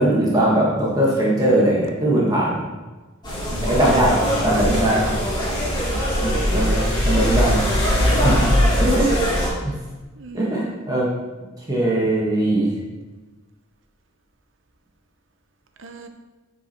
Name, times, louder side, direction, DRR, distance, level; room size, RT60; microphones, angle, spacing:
voice 1, 0.0-2.6 3.6-4.1 4.4-5.0 6.2-7.6 8.1-8.5 8.8-9.1 9.6-9.7 10.3-11.1 11.7-12.7, right 1 dB, 20° right, -5 dB, 1.5 m, -20 dB
voice 2, 1.1-1.7 3.5-4.8 5.9-6.2 6.5-6.8 8.6-8.8 10.2-10.8 15.8-16.1, right 2 dB, 60° right, 6 dB, 0.8 m, -34 dB
sound 1, 3.2-9.5, equal, 20° left, 2.4 m, -21 dB
9.7 x 4.8 x 4.4 m, 1.2 s
head